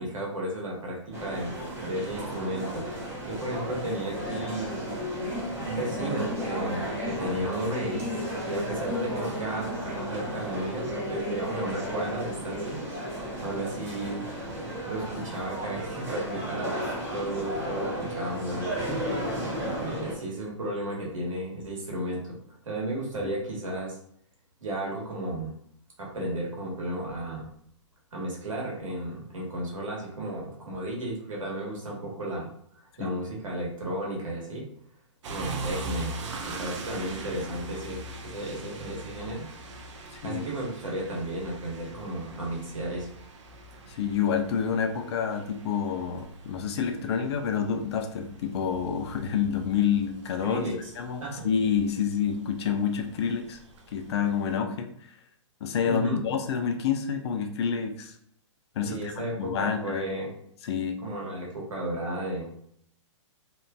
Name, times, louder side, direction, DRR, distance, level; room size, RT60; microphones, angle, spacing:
voice 1, 0.0-1.5 1.8-2.8 3.2-4.8 5.6-8.0 8.5-12.8 13.4-14.3 14.9-19.0 19.3-22.4 22.6-24.0 24.6-25.5 26.0-27.5 28.1-32.5 33.0-34.7 35.3-39.5 40.2-43.1 50.4-50.9 51.2-51.5 55.9-56.2 58.8-60.3 61.0-62.5, right 1 dB, 90° right, -2 dB, 1.2 m, -33 dB
sound 1, 1.1-20.1, equal, 15° right, 0.8 m, -33 dB
sound 2, 35.2-54.6, right 2 dB, 65° right, 0.5 m, -42 dB
voice 2, 43.9-50.6 51.0-53.6 53.9-54.9 55.6-58.1 58.8-59.1 59.4-60.2 60.6-61.0, left 7 dB, 55° left, 5 dB, 0.5 m, -28 dB
2.8 x 2.5 x 2.2 m, 0.66 s
hypercardioid pair, 135°, 16 cm